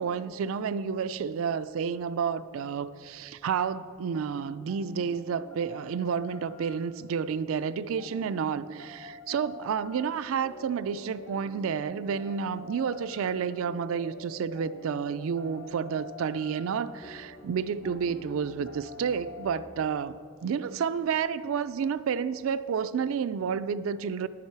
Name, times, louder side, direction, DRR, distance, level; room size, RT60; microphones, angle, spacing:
voice 1, 0.0-24.3, right 6 dB, 75° right, 13 dB, 0.3 m, -30 dB
sound 1, 3.9-19.5, left 2 dB, 60° left, 1.5 m, -48 dB
10.5 x 8.5 x 4.7 m, 2.2 s
head